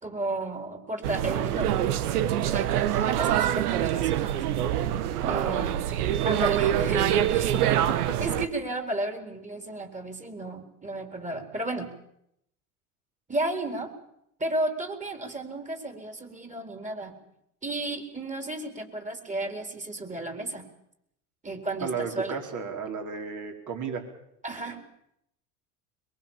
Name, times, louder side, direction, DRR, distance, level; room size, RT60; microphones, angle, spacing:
voice 1, 0.0-1.7 2.4-4.4 5.2-5.8 6.2-7.5 8.2-11.9 13.3-13.9 14.4-17.2 17.6-20.7 21.4-22.4 24.4-24.8, right 2 dB, 15° right, 6 dB, 4.2 m, -33 dB
sound 1, 1.0-8.5, right 11 dB, 80° right, 1.5 m, -25 dB
voice 2, 5.3-5.6 5.9-6.0 7.5-8.2 21.8-24.1, right 6 dB, 40° right, 3 dB, 5.1 m, -34 dB
23.0 x 22.0 x 7.4 m, 0.77 s
hypercardioid pair, 90°, 45 cm